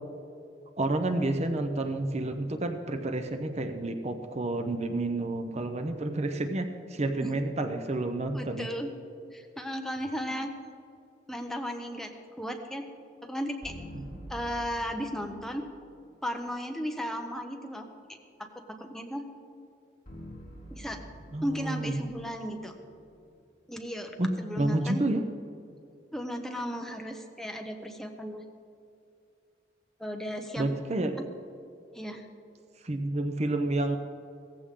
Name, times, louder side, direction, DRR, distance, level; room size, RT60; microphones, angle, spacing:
voice 1, 0.8-8.7 13.9-14.1 21.3-22.0 24.2-24.3 24.6-25.2 30.6-31.2 32.8-34.0, right 2 dB, 40° right, 6 dB, 0.8 m, -30 dB
voice 2, 8.3-8.9 9.3-10.5 11.3-12.1 12.4-12.8 13.2-13.7 14.3-15.7 16.2-17.9 18.4-19.2 20.7-21.0 21.4-22.7 23.7-24.1 24.4-25.0 26.1-28.4 30.0-30.7 31.9-32.3, equal, 5° left, 3 dB, 1.0 m, -35 dB
sound 1, 13.6-15.8 20.1-23.3, equal, 40° left, 3.7 m, -46 dB
16.5 x 15.0 x 3.7 m, 2.5 s
head